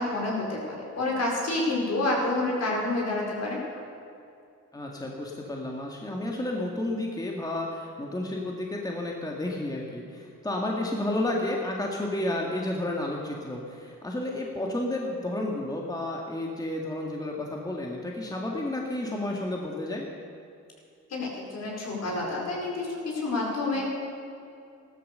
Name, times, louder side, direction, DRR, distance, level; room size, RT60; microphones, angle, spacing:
voice 1, 0.0-3.8 21.1-23.9, left 2 dB, 60° left, -2 dB, 5.0 m, -29 dB
voice 2, 4.7-20.1, left 1 dB, 10° left, -1 dB, 2.0 m, -31 dB
15.0 x 13.0 x 6.8 m, 2.5 s
cardioid pair, 90°, 30 cm